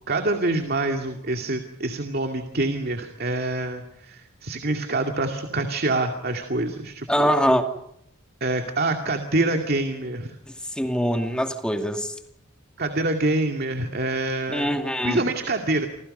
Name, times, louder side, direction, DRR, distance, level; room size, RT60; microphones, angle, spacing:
voice 1, 0.1-7.3 8.4-10.3 12.8-14.7 15.0-15.9, right 2 dB, 50° right, 5 dB, 2.3 m, -26 dB
voice 2, 7.1-7.6 10.8-12.1 14.5-15.3, equal, 5° left, 5 dB, 2.4 m, -23 dB
29.0 x 26.0 x 5.5 m, 0.75 s
head